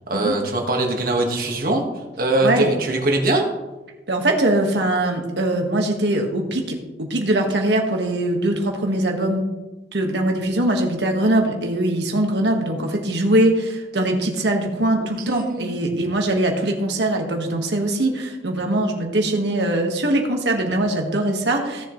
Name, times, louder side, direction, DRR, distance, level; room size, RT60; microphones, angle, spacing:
voice 1, 0.0-3.5 15.3-15.9, right 2 dB, 50° right, 1 dB, 1.8 m, -22 dB
voice 2, 4.1-9.5 9.9-21.9, right 1 dB, 70° right, 2 dB, 1.7 m, -22 dB
16.5 x 7.5 x 3.2 m, 1.1 s
head